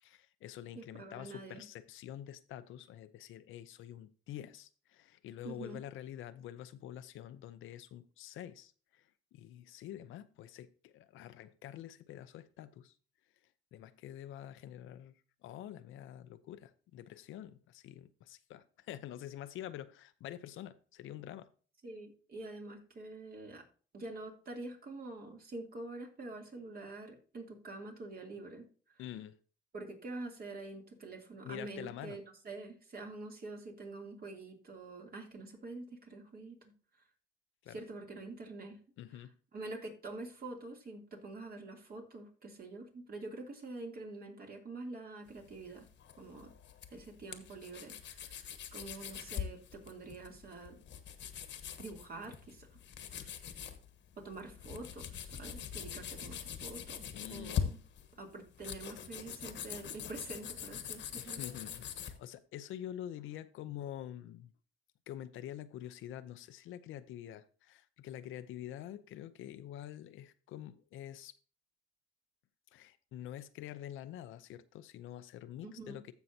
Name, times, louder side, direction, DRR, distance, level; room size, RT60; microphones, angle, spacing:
voice 1, 0.0-9.1 9.3-12.9 13.7-21.5 29.0-29.4 31.4-32.2 37.6-37.8 39.0-39.3 53.4-53.5 57.1-57.6 61.2-64.5 65.1-71.3 72.7-76.1, left 11 dB, 85° left, 0.6 m, -47 dB
voice 2, 0.7-1.6 5.4-5.8 21.8-23.6 23.9-29.0 29.7-36.7 37.7-38.8 39.1-39.2 39.5-45.9 46.2-46.5 46.9-48.4 48.7-50.8 51.8-52.7 53.1-53.3 54.2-57.8 58.1-61.4 75.6-76.0, right 2 dB, 50° right, 2.9 m, -46 dB
sound 1, 45.3-62.2, left 8 dB, 65° left, 1.2 m, -43 dB
15.0 x 5.6 x 2.8 m
cardioid pair, 90°, 20 cm